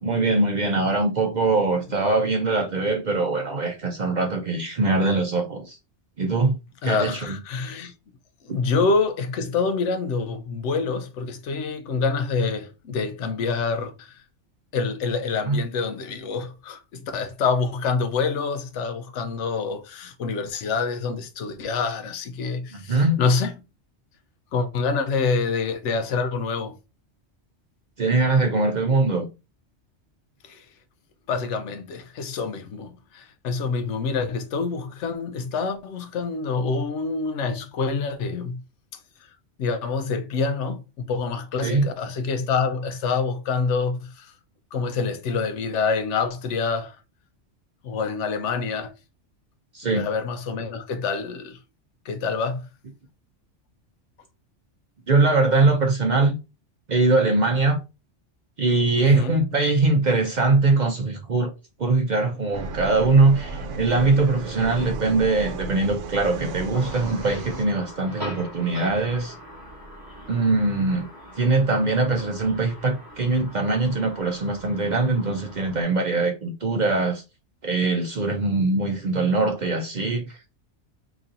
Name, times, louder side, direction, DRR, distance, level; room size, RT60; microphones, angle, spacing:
voice 1, 0.0-5.8 6.2-6.5 6.8-7.4 8.5-8.6 15.5-15.6 22.7-23.2 28.0-29.3 41.6-41.9 49.7-50.1 55.1-56.4 56.9-57.8 58.6-61.5 61.8-69.3 70.3-71.1 71.4-77.2 77.6-80.4, right 3 dB, 50° right, 0.6 m, -22 dB
voice 2, 6.8-7.9 8.4-14.1 14.7-23.5 24.5-26.8 30.4-30.6 31.3-38.6 39.6-44.3 44.7-47.0 47.8-48.9 50.0-51.6 52.1-52.7 59.0-59.3, left 4 dB, 80° left, 0.9 m, -26 dB
sound 1, 62.5-67.6, right 3 dB, 80° right, 1.0 m, -34 dB
sound 2, 66.7-75.8, equal, 20° right, 1.0 m, -42 dB
3.0 x 2.7 x 3.7 m
omnidirectional pair, 1.2 m